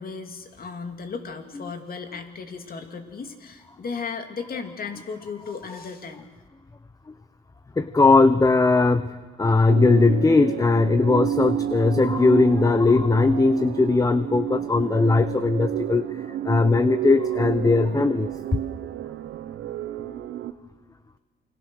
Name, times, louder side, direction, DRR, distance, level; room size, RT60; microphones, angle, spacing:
voice 1, 0.0-6.2, left 5 dB, 50° left, 5 dB, 2.8 m, -35 dB
voice 2, 7.8-16.0 16.4-18.3, left 3 dB, 15° left, 12 dB, 0.8 m, -19 dB
sound 1, 9.7-20.5, right 11 dB, 75° right, 1.1 m, -30 dB
28.5 x 22.0 x 6.5 m, 1.4 s
cardioid pair, 90°, 20 cm